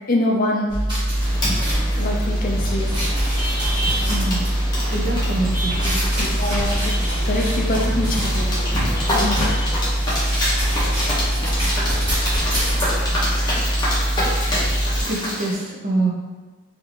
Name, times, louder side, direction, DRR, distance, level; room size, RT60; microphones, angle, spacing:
voice 1, 0.1-0.8 2.0-3.0 6.2-6.9 7.3-8.6 9.1-9.3, left 1 dB, 40° left, -1 dB, 0.4 m, -24 dB
sound 1, 0.7-15.0, right 1 dB, 20° right, 1.4 m, -22 dB
sound 2, 1.1-15.5, equal, 20° left, 0.9 m, -27 dB
voice 2, 4.1-4.5 4.9-6.1 9.2-9.5 15.0-16.1, right 2 dB, 35° right, -2 dB, 0.6 m, -25 dB
4.2 x 2.7 x 2.8 m, 1.3 s
head